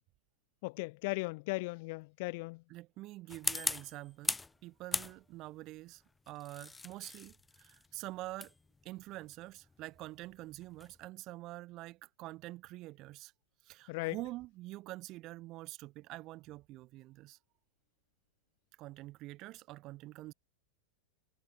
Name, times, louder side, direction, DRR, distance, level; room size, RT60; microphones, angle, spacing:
voice 1, 0.6-2.6 13.9-14.2, left 26 dB, 50° left, 0.4 m, -37 dB
voice 2, 2.7-8.5 8.8-13.3 13.6-17.4 18.8-20.3, right 18 dB, 40° right, 1.2 m, -46 dB
sound 1, 3.3-4.6 4.9-5.5 6.3-11.0, left 3 dB, 10° left, 0.7 m, -39 dB
figure-of-eight pair, 90°, 0 cm